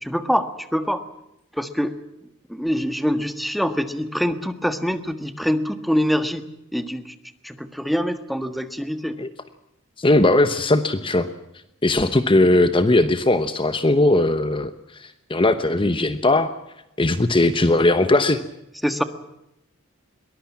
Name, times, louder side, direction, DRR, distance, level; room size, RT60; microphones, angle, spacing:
voice 1, 0.0-1.0 1.5-2.0 2.5-7.1 7.4-9.2 18.8-19.0, equal, ahead, 9 dB, 1.5 m, -24 dB
voice 2, 10.0-11.3 11.8-16.5 17.0-18.4, left 2 dB, 25° left, 11 dB, 1.0 m, -19 dB
22.5 x 20.0 x 7.4 m, 0.85 s
head